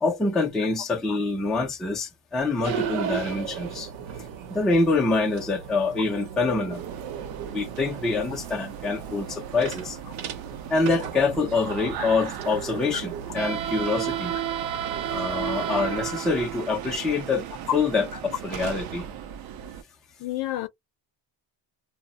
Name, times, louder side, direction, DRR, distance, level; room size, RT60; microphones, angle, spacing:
voice 1, 0.0-3.9 4.5-6.8 7.5-10.0 10.7-14.4 15.1-17.5 17.7-19.1, left 3 dB, ahead, 0.4 m, -25 dB
sound 1, 2.6-16.2, right 8 dB, 85° right, 0.8 m, -37 dB
sound 2, 6.7-19.8, right 10 dB, 55° right, 0.5 m, -35 dB
voice 2, 20.2-20.7, left 14 dB, 55° left, 0.6 m, -30 dB
2.1 x 2.0 x 3.7 m
cardioid pair, 155°, 44 cm